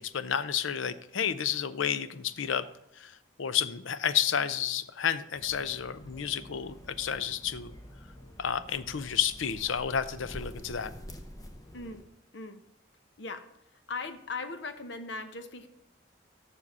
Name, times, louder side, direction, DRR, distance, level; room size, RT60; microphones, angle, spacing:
voice 1, 0.0-2.6 3.0-3.1 3.4-7.7 8.4-10.9, left 8 dB, 90° left, 14 dB, 0.6 m, -31 dB
sound 1, 5.3-12.0, equal, 20° left, 0.8 m, -47 dB
voice 2, 13.9-15.7, left 3 dB, 70° left, 9 dB, 0.9 m, -38 dB
7.4 x 6.6 x 5.4 m, 0.80 s
head